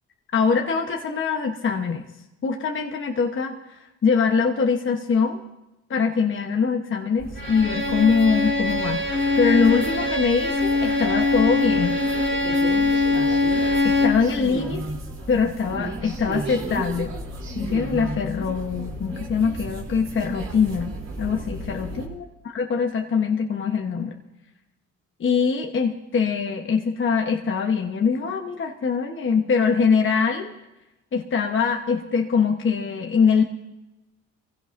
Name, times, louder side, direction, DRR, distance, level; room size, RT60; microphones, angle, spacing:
voice 1, 0.3-2.0 2.4-5.4 5.9-12.0 13.8-14.8 15.3-17.1 17.5-22.2 22.5-24.2 25.2-30.5 31.1-33.4, left 5 dB, 40° left, 2 dB, 1.1 m, -23 dB
sound 1, 7.2-22.1, right 1 dB, 60° right, 3.1 m, -34 dB
Bowed string instrument, 7.4-14.3, left 3 dB, 40° right, 4.3 m, -22 dB
24.0 x 16.0 x 2.6 m, 1.0 s
cardioid pair, 90°, 30 cm